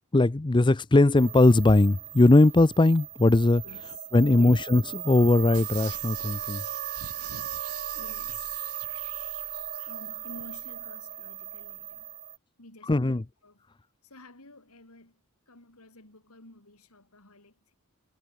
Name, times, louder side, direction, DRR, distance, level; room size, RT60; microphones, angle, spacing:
voice 1, 0.1-3.6 4.1-6.6 12.9-13.2, left 2 dB, 20° left, 0.5 m, -20 dB
sound 1, 1.2-12.4, right 11 dB, 45° right, 1.8 m, -37 dB
voice 2, 3.6-4.5 7.9-8.8 9.9-12.1 12.6-13.6 14.0-15.2 15.5-17.7, left 2 dB, 80° left, 5.8 m, -51 dB
sound 2, 5.5-10.0 10.4-10.5, right 8 dB, 85° right, 3.6 m, -46 dB
head